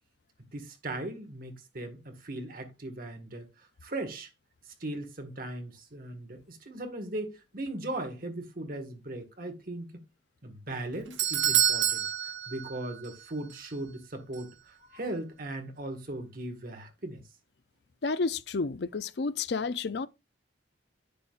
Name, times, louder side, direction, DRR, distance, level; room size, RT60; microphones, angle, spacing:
voice 1, 0.5-3.5 3.8-4.3 4.8-10.0 10.4-17.2, right 1 dB, 50° right, 1.8 m, -38 dB
Doorbell, 10.7-13.2 13.5-13.6 14.3-14.4, right 10 dB, 75° right, 0.9 m, -28 dB
voice 2, 18.0-20.1, left 4 dB, 60° left, 0.5 m, -31 dB
10.0 x 7.1 x 2.5 m
head